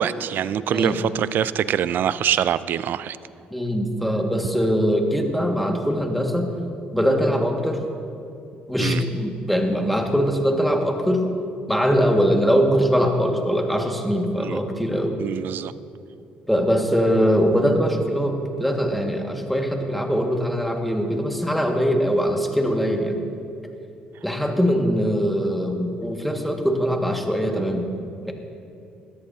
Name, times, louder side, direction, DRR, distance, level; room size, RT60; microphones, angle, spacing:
voice 1, 0.0-3.2 8.8-9.0 14.4-14.6 15.2-15.7, right 9 dB, 60° right, 16 dB, 0.4 m, -24 dB
voice 2, 3.5-6.5 6.9-7.8 8.7-11.3 11.7-15.2 16.5-23.2 24.2-27.9 28.2-28.3, equal, ahead, 2 dB, 1.9 m, -22 dB
20.0 x 13.5 x 2.8 m, 2.5 s
supercardioid pair, 65°, 4 cm